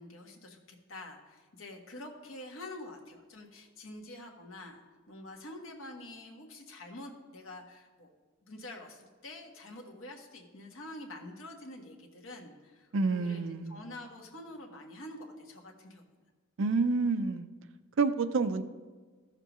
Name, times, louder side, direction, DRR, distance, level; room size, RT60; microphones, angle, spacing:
voice 1, 0.0-8.1 8.4-16.0, left 1 dB, 70° left, 2 dB, 1.3 m, -47 dB
voice 2, 12.9-13.8 16.6-17.5 18.0-18.6, right 4 dB, 65° right, 11 dB, 0.5 m, -28 dB
14.5 x 6.7 x 3.0 m, 1.4 s
head